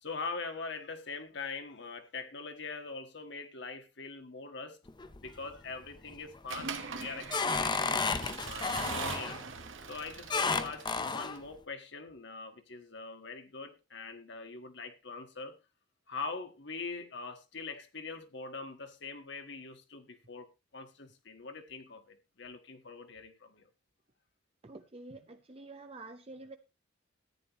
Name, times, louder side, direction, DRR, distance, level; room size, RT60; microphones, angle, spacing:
voice 1, 0.0-4.8 5.2-9.4 9.9-15.6 16.1-23.7, left 4 dB, 60° left, 1.6 m, -43 dB
sound 1, 4.9-5.5 6.0-6.4 6.8-9.4 10.3-11.4, left 4 dB, 25° left, 0.7 m, -32 dB
Accelerating revving vroom / Mechanisms, 6.5-11.4, right 5 dB, 75° right, 1.5 m, -41 dB
voice 2, 24.6-26.6, right 2 dB, 30° right, 0.7 m, -48 dB
14.0 x 9.9 x 3.0 m
head